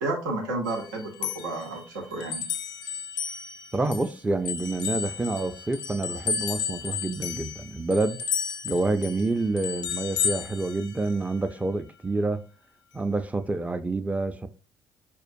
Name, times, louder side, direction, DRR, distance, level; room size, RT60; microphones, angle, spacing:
voice 1, 0.0-2.5, right 2 dB, 80° right, 0.7 m, -31 dB
sound 1, 0.7-4.1 4.5-11.4, left 8 dB, 85° left, 0.4 m, -33 dB
voice 2, 3.7-8.2 8.6-12.4 12.9-14.5, right 2 dB, 15° right, 0.4 m, -28 dB
4.3 x 2.4 x 2.5 m
hypercardioid pair, 55°, 10 cm